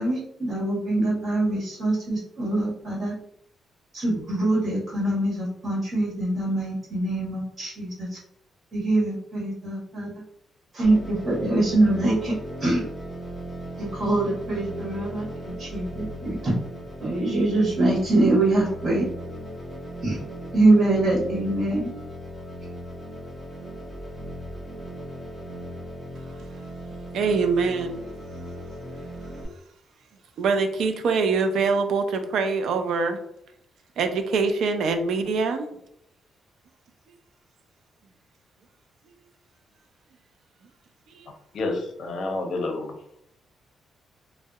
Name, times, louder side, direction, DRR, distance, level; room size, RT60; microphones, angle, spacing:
voice 1, 0.0-3.1 3.9-8.2 8.7-10.1 10.7-12.3 12.6-12.8 13.8-16.5 17.0-19.0 20.0-20.2 20.5-21.9, right 2 dB, 40° right, -5 dB, 1.2 m, -24 dB
sound 1, 10.8-29.5, equal, 10° right, 0.9 m, -38 dB
voice 2, 26.9-28.0 30.4-33.2 34.0-35.7 41.1-41.3, right 4 dB, 75° right, 7 dB, 0.3 m, -24 dB
voice 3, 41.5-43.0, left 2 dB, 65° left, 4 dB, 0.5 m, -29 dB
2.7 x 2.0 x 2.3 m, 0.74 s
cardioid pair, 120°, 0 cm